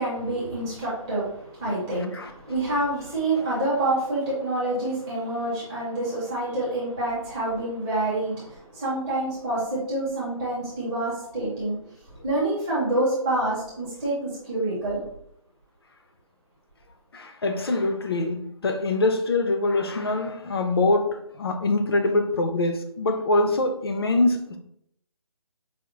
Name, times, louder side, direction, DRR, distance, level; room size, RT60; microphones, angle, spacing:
voice 1, 0.0-11.8 12.2-15.0, right 2 dB, 10° right, 0.6 m, -27 dB
voice 2, 17.1-24.6, left 2 dB, 45° left, 0.4 m, -24 dB
4.7 x 2.0 x 2.9 m
hypercardioid pair, 170°, 18 cm